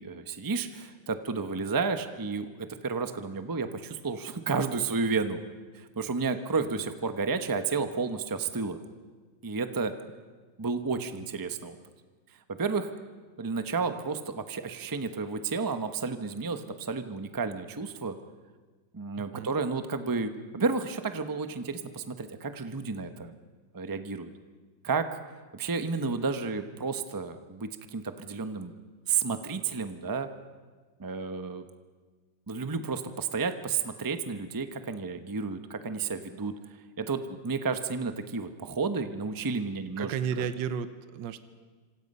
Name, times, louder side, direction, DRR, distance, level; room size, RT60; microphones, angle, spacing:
voice 1, 0.0-5.4 5.7-8.8 9.4-9.9 10.6-11.8 12.6-12.9 13.4-18.2 18.9-23.3 23.7-24.3 24.8-25.2 25.5-28.7 29.1-30.3 31.0-31.6 32.5-36.5 37.0-40.5, right 4 dB, 20° right, 8 dB, 0.6 m, -31 dB
voice 2, 19.2-19.5 40.0-41.4, right 7 dB, 65° right, 11 dB, 1.5 m, -33 dB
27.0 x 26.0 x 5.5 m, 1.4 s
omnidirectional pair, 2.2 m